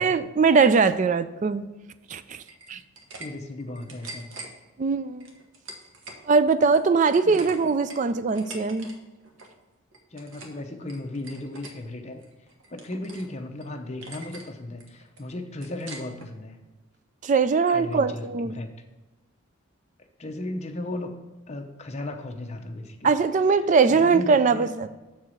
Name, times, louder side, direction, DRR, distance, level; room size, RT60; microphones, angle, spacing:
voice 1, 0.0-1.6 2.1-2.4 2.7-2.8 4.8-5.3 6.3-8.9 17.2-18.6 23.0-24.9, right 5 dB, 35° right, 13 dB, 0.3 m, -21 dB
sound 1, 2.4-3.3 3.6-4.5 5.2-6.2 6.6-8.9 9.2-9.5 9.9-10.6 10.9-11.7 12.2-13.3 13.6-13.7 14.0-14.5 14.8-16.3, right 2 dB, 70° right, 1.1 m, -43 dB
voice 2, 3.2-4.3 7.2-7.5 10.1-12.2 12.7-16.6 17.7-18.7 20.2-21.1 21.5-23.1 23.6-24.7, left 1 dB, 30° left, 5 dB, 0.7 m, -36 dB
6.8 x 4.6 x 6.3 m, 1.1 s
head